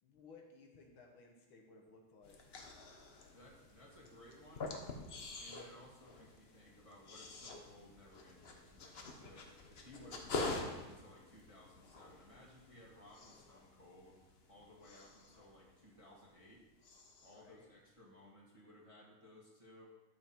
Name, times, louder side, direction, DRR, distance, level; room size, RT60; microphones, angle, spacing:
voice 1, 0.0-2.4 9.9-11.0 17.2-17.7, left 3 dB, 70° left, 2 dB, 1.9 m, -60 dB
sound 1, 2.2-16.5 16.8-17.5, left 3 dB, 50° left, 0.7 m, -47 dB
voice 2, 3.3-4.7 5.4-16.6 17.2-19.9, left 1 dB, 15° right, -5 dB, 1.6 m, -60 dB
12.0 x 5.6 x 4.4 m, 1.1 s
omnidirectional pair, 2.3 m